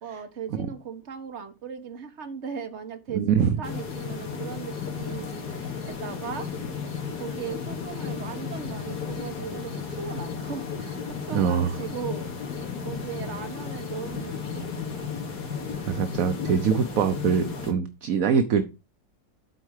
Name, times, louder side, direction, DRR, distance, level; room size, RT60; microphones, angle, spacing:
voice 1, 0.0-5.3 5.8-6.5 7.2-12.3 12.8-14.7, right 7 dB, 45° right, 1.5 m, -37 dB
voice 2, 3.1-3.6 11.3-11.8 15.9-18.6, right 7 dB, 60° right, 1.1 m, -23 dB
sound 1, 3.6-17.7, left 6 dB, 65° left, 2.5 m, -34 dB
8.1 x 4.5 x 6.5 m
omnidirectional pair, 1.9 m